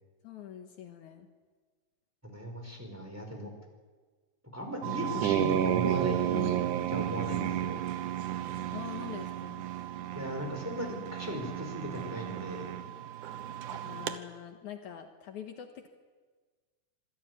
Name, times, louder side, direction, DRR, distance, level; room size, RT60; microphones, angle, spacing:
voice 1, 0.2-1.3 8.7-9.6 13.8-15.9, left 10 dB, 70° left, 5 dB, 2.6 m, -44 dB
voice 2, 2.2-3.5 4.5-6.5 6.9-7.8 10.1-12.7, equal, 5° right, 2 dB, 4.7 m, -37 dB
sound 1, 4.8-14.2, right 11 dB, 75° right, 2.5 m, -32 dB
26.0 x 16.0 x 9.7 m, 1.4 s
omnidirectional pair, 3.7 m